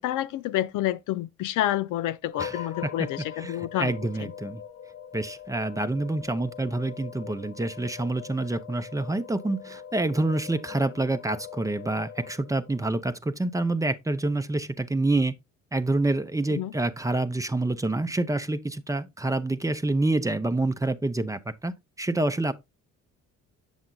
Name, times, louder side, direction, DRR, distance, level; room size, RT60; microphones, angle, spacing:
voice 1, 0.0-3.9 4.2-4.3 16.5-16.7, left 13 dB, 85° left, 0.5 m, -29 dB
sound 1, 2.3-12.8, left 9 dB, 60° left, 1.2 m, -42 dB
voice 2, 2.4-3.1 3.4-4.6 5.1-15.3 15.7-22.5, right 2 dB, 10° right, 0.6 m, -27 dB
7.7 x 7.2 x 2.3 m
cardioid pair, 90°, 30 cm